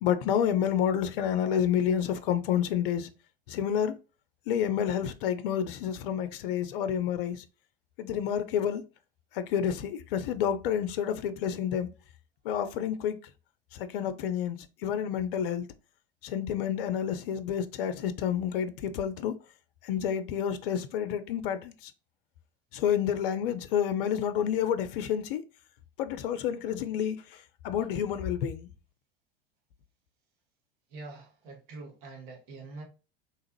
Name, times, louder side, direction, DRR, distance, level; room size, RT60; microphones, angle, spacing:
voice 1, 0.0-3.1 3.5-4.0 4.5-7.4 8.0-8.8 9.3-11.9 12.4-13.2 13.7-15.7 16.2-19.4 19.8-21.9 22.7-25.4 26.0-28.7, left 9 dB, 65° left, 0.5 m, -29 dB
voice 2, 30.9-32.8, right 3 dB, 60° right, 1.6 m, -45 dB
3.6 x 2.9 x 3.0 m
hypercardioid pair, 80°, 30 cm